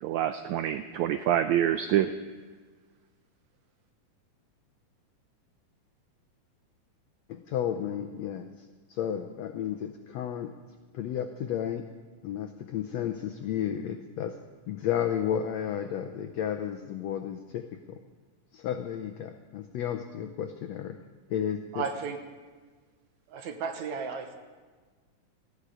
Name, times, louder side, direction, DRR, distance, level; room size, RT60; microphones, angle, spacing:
voice 1, 0.0-2.1, right 11 dB, 85° right, 9 dB, 1.6 m, -26 dB
voice 2, 7.3-8.5 8.9-10.5 10.9-11.8 12.2-14.4 14.7-18.0 18.5-21.0 21.3-21.8, left 9 dB, 80° left, 7 dB, 1.5 m, -32 dB
voice 3, 21.7-22.2 23.3-24.4, right 5 dB, 70° right, 6 dB, 2.2 m, -34 dB
18.5 x 14.5 x 5.0 m, 1.4 s
omnidirectional pair, 3.9 m